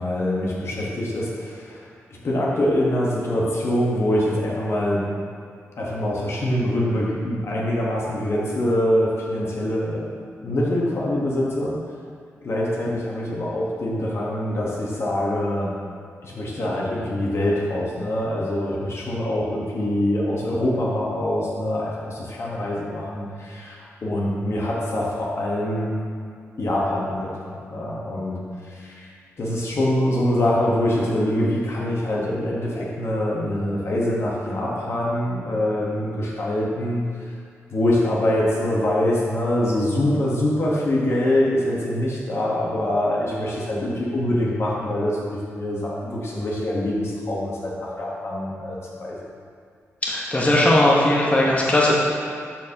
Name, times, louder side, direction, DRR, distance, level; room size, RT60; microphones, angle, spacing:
voice 1, 0.0-1.8 2.2-5.1 5.8-10.0 10.4-11.8 12.4-15.7 16.2-25.9 26.6-28.4 28.7-29.0 29.4-37.0 37.7-49.2, left 1 dB, 60° left, -4 dB, 1.3 m, -24 dB
voice 2, 50.0-51.9, left 1 dB, 25° left, -5 dB, 1.2 m, -18 dB
12.0 x 4.4 x 2.9 m, 2.2 s
cardioid pair, 75°, 5 cm